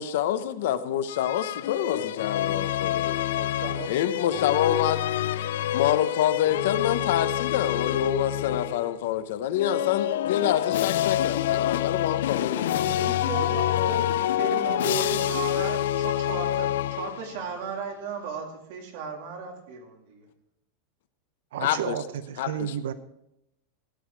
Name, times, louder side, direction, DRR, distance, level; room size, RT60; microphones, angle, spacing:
voice 1, 0.0-3.2 3.9-5.0 5.7-12.8 21.6-21.9 22.4-22.7, left 10 dB, 60° left, 12 dB, 0.8 m, -27 dB
sound 1, 1.1-9.0 9.5-17.5, left 12 dB, 80° left, 0.4 m, -27 dB
voice 2, 3.3-3.9 4.2-4.3 12.3-20.3, right 4 dB, 50° right, 2 dB, 2.6 m, -35 dB
voice 3, 21.5-22.9, right 10 dB, 75° right, 12 dB, 0.7 m, -32 dB
15.0 x 9.5 x 4.6 m, 0.80 s
supercardioid pair, 180°, 0 cm